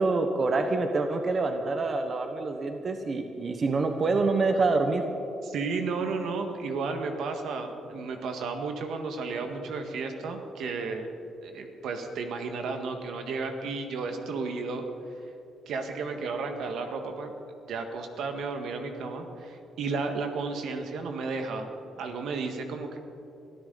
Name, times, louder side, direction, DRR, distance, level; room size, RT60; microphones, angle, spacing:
voice 1, 0.0-5.1, right 3 dB, 45° right, 6 dB, 1.1 m, -26 dB
voice 2, 5.4-11.1 11.4-14.8 15.7-17.3 17.7-21.7 22.0-23.0, right 4 dB, 75° right, 5 dB, 1.7 m, -33 dB
23.5 x 14.0 x 4.0 m, 2.7 s
cardioid pair, 90°, 0 cm